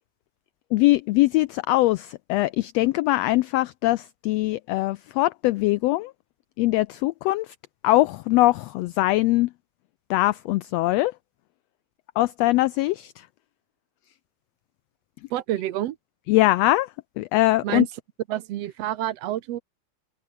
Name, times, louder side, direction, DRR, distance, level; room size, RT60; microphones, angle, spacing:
voice 1, 0.7-6.1 6.6-7.5 7.8-9.5 10.1-11.1 12.2-13.3 16.3-16.9 17.2-17.9, left 18 dB, 85° left, 1.4 m, -22 dB
voice 2, 15.3-16.0 17.6-17.9 18.3-19.6, right 13 dB, 65° right, 1.9 m, -28 dB
omnidirectional pair, 3.4 m